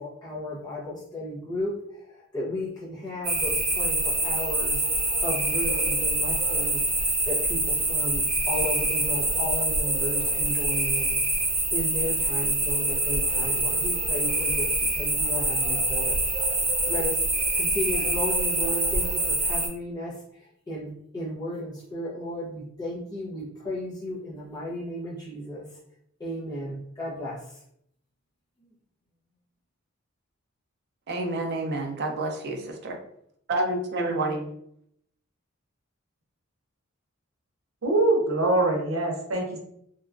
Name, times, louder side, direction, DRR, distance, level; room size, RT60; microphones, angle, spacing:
voice 1, 0.0-1.7 2.3-4.8 5.2-11.2 11.7-16.2 16.9-17.2 17.5-20.1 20.7-25.6 26.2-27.4 28.6-28.7, left 1 dB, 20° left, -8 dB, 0.6 m, -34 dB
sound 1, 3.2-19.7, right 2 dB, 35° right, 0.9 m, -25 dB
voice 2, 31.1-33.0 33.5-34.5, right 2 dB, 55° right, 3 dB, 0.4 m, -29 dB
voice 3, 37.8-39.6, right 2 dB, 90° right, 1 dB, 0.7 m, -23 dB
2.9 x 2.3 x 2.4 m, 0.71 s
head